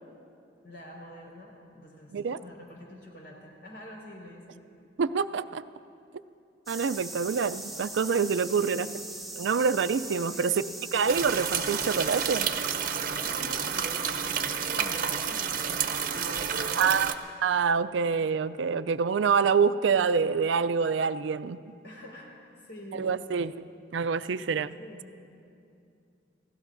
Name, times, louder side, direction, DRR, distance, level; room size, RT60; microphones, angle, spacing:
voice 1, 0.6-4.6 8.6-8.9 10.3-10.7 13.2-17.1 21.8-23.4 24.8-25.1, equal, 75° left, -3 dB, 4.8 m, -46 dB
voice 2, 5.0-5.6 6.7-8.9 9.4-10.5 10.9-12.5 16.8-17.1 17.4-21.6 23.0-23.5 23.9-24.7, right 5 dB, 85° right, 14 dB, 0.4 m, -26 dB
sound 1, 6.7-12.5, right 2 dB, ahead, 1.2 m, -40 dB
sound 2, 11.1-17.1, right 7 dB, 50° right, 0.7 m, -30 dB
29.5 x 16.5 x 2.6 m, 2.5 s
head